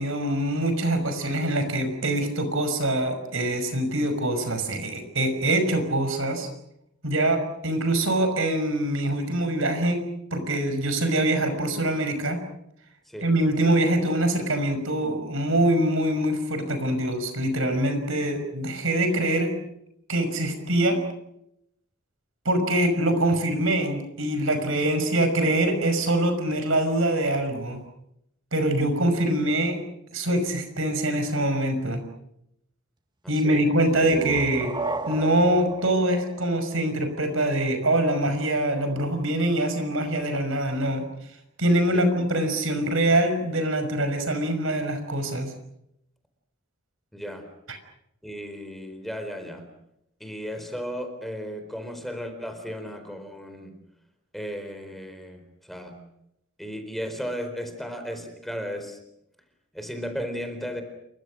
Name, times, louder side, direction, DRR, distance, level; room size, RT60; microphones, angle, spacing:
voice 1, 0.0-6.5 7.0-10.0 10.3-12.4 13.2-19.6 20.1-21.0 22.5-27.8 28.5-29.8 30.1-32.0 33.3-34.8 35.1-41.0 41.6-45.5, right 1 dB, 70° right, 8 dB, 5.7 m, -24 dB
voice 2, 13.1-13.5 33.2-33.7 41.9-42.1 47.1-47.5 48.2-49.6 50.2-53.8 54.3-56.0 56.6-59.0 59.7-60.8, equal, ahead, 6 dB, 4.2 m, -35 dB
sound 1, 33.8-37.3, right 2 dB, 20° right, 1.5 m, -34 dB
29.0 x 24.0 x 6.3 m, 0.78 s
head